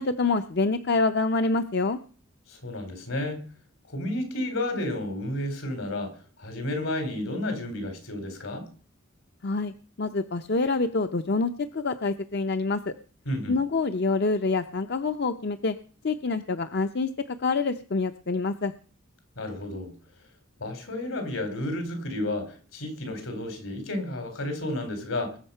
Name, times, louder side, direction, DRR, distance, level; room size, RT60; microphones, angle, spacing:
voice 1, 0.0-2.0 9.4-12.9 13.5-15.7 16.0-18.7, left 3 dB, 55° left, 9 dB, 0.6 m, -26 dB
voice 2, 2.5-3.4 3.9-6.1 6.4-8.7 13.3-13.6 19.4-19.9 20.6-25.4, left 1 dB, 80° left, 6 dB, 3.9 m, -31 dB
20.5 x 7.2 x 5.6 m, 0.41 s
head